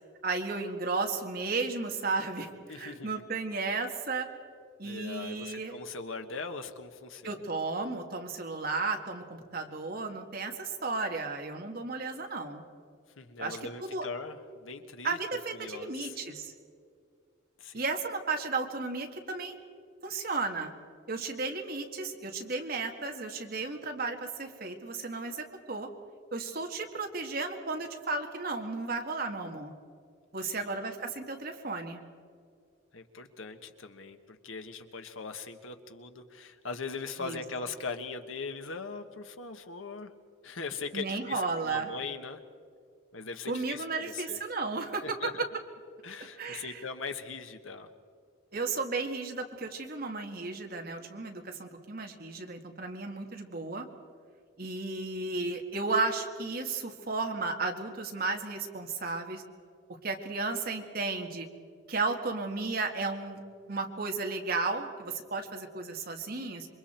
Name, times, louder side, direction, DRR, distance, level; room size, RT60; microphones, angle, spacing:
voice 1, 0.2-4.3 4.8-5.7 7.2-12.6 13.4-14.1 15.0-16.5 17.7-19.5 20.0-20.7 21.1-25.9 26.3-29.7 30.3-32.0 37.2-37.4 40.9-41.9 43.5-45.0 46.4-46.8 48.5-53.9 54.6-59.4 60.0-61.5 61.9-63.4 63.7-66.7, right 3 dB, 50° right, 3 dB, 1.9 m, -34 dB
voice 2, 2.7-3.1 4.8-7.4 13.2-15.2 15.5-16.2 17.6-17.8 30.5-30.7 32.9-40.1 40.4-42.4 43.1-44.4 45.0-45.4 46.0-47.9, left 4 dB, 85° left, 7 dB, 1.4 m, -40 dB
27.0 x 23.5 x 4.5 m, 2.2 s
head